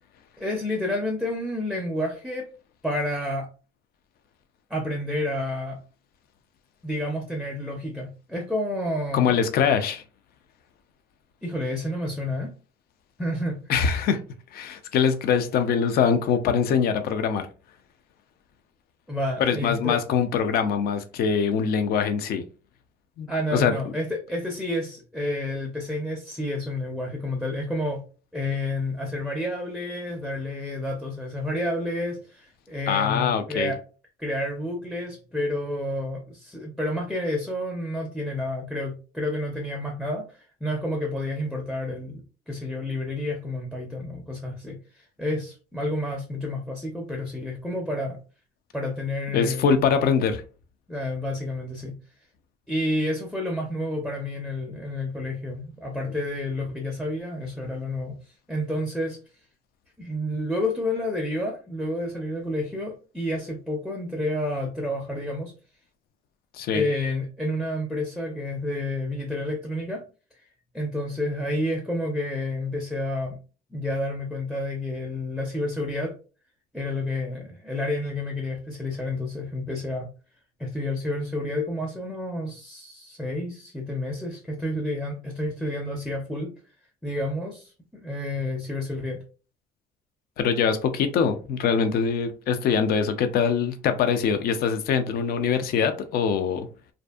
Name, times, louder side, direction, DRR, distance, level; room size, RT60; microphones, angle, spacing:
voice 1, 0.4-2.5 2.8-3.5 4.7-5.8 6.8-9.4 11.4-12.5 13.2-13.6 19.1-20.0 23.3-28.0 28.3-33.8 34.2-48.2 48.7-49.8 50.9-51.9 52.7-58.2 58.5-59.2 60.0-65.5 66.7-70.0 70.7-73.4 73.7-76.1 76.7-80.1 80.6-86.5 87.0-89.2, left 1 dB, ahead, 1 dB, 0.5 m, -30 dB
voice 2, 9.1-10.0 13.7-14.2 14.5-17.5 19.4-22.4 23.2-23.7 32.9-33.7 49.3-50.4 66.5-66.8 90.4-96.7, left 6 dB, 65° left, 9 dB, 0.4 m, -23 dB
2.5 x 2.5 x 2.3 m, 0.34 s
cardioid pair, 110°, 17 cm